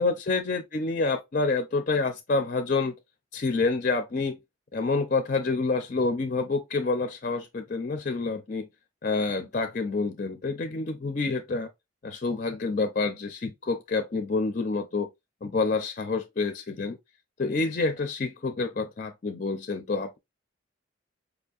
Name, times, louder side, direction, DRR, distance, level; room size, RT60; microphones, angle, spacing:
voice 1, 0.0-2.9 3.3-4.4 4.7-8.7 9.0-11.7 12.0-15.1 15.4-17.0 17.4-20.2, left 3 dB, 40° left, 0.4 m, -28 dB
4.8 x 2.6 x 2.4 m
head